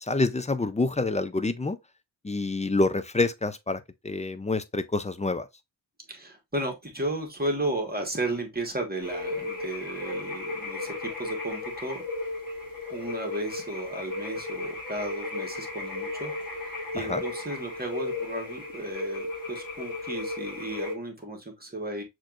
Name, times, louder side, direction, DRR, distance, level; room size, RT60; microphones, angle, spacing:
voice 1, 0.0-1.8 2.2-5.5 17.0-17.2, left 3 dB, 15° left, 0.4 m, -27 dB
voice 2, 6.1-12.0 12.9-22.0, right 1 dB, 20° right, 1.4 m, -34 dB
sound 1, 9.0-20.9, left 2 dB, 45° left, 1.7 m, -35 dB
6.4 x 3.1 x 2.4 m
wide cardioid pair, 85°, 45 cm